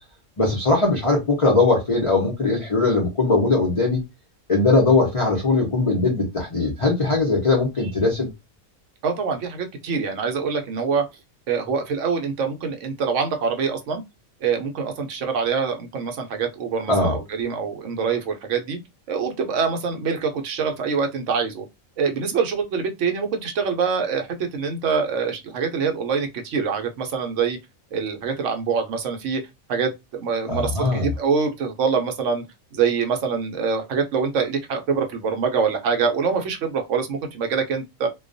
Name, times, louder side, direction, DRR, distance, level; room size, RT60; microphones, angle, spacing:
voice 1, 0.4-4.0 4.5-8.3 16.9-17.2 30.5-31.1, left 3 dB, 45° left, 0.4 m, -20 dB
voice 2, 9.0-11.0 11.5-14.0 14.4-18.8 19.1-21.6 22.0-27.6 27.9-29.4 29.7-32.4 32.7-38.1, right 5 dB, 70° right, 0.9 m, -25 dB
2.2 x 2.2 x 2.5 m
omnidirectional pair, 1.5 m